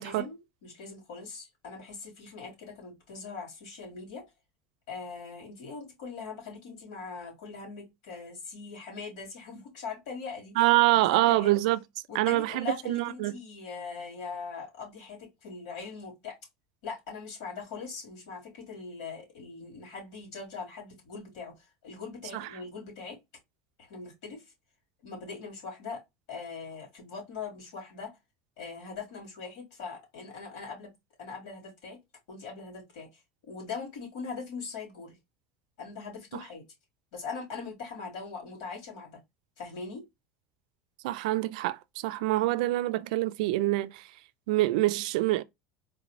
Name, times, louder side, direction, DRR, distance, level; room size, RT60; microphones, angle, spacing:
voice 1, 0.0-4.3 4.9-10.6 11.1-11.6 12.1-16.4 16.8-23.2 23.9-24.4 25.0-26.0 26.3-28.1 28.6-30.9 31.2-32.0 32.3-33.2 33.5-35.2 35.8-36.6 37.1-39.2 39.6-40.0, left 5 dB, 80° left, 2.8 m, -41 dB
voice 2, 10.6-11.8 12.1-13.4 22.3-22.5 36.3-36.4 41.0-44.0 44.5-45.4, right 17 dB, 85° right, 0.3 m, -26 dB
4.0 x 2.5 x 3.0 m
cardioid pair, 175°, 4 cm